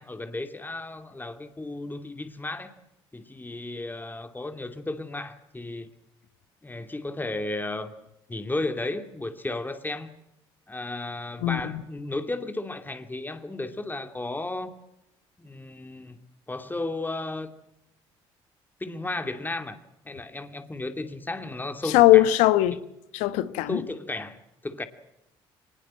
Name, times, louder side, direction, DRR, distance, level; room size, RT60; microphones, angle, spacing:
voice 1, 0.0-2.7 3.1-5.9 6.6-7.9 8.3-10.1 10.7-14.8 15.4-16.2 16.5-17.6 18.8-19.8 20.0-22.3 23.7-24.4 24.6-24.9, left 2 dB, 15° left, 2.5 m, -34 dB
voice 2, 11.4-11.8 21.9-22.8 23.1-23.8, left 15 dB, 75° left, 1.2 m, -19 dB
24.0 x 20.5 x 7.5 m
hypercardioid pair, 60°, 13 cm